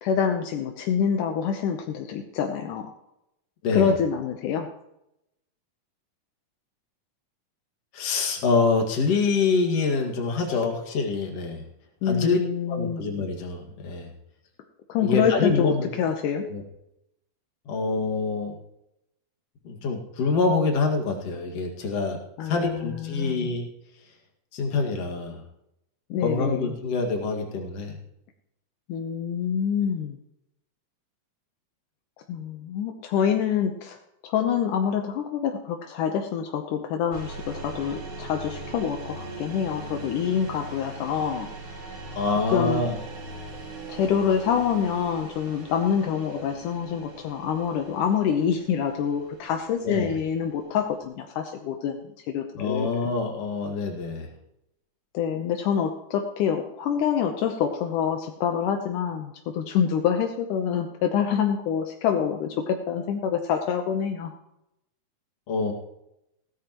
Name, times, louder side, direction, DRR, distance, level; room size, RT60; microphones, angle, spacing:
voice 1, 0.0-2.9 3.7-4.7 12.0-13.0 14.9-16.5 22.4-23.5 26.1-26.7 28.9-30.2 32.3-34.0 34.2-41.5 42.3-42.8 43.9-52.9 55.1-64.3, left 7 dB, 80° left, 4 dB, 2.4 m, -26 dB
voice 2, 7.9-11.6 12.1-12.4 12.7-14.1 15.0-15.9 16.5-16.6 17.7-18.6 19.6-22.2 22.4-23.7 24.5-25.4 26.2-28.0 42.1-43.0 46.3-46.4 49.8-50.1 52.5-54.3 65.5-65.7, left 4 dB, 55° left, 2 dB, 2.9 m, -25 dB
sound 1, 37.1-51.0, right 2 dB, 45° right, 2.8 m, -41 dB
17.0 x 13.5 x 3.0 m, 0.84 s
omnidirectional pair, 3.7 m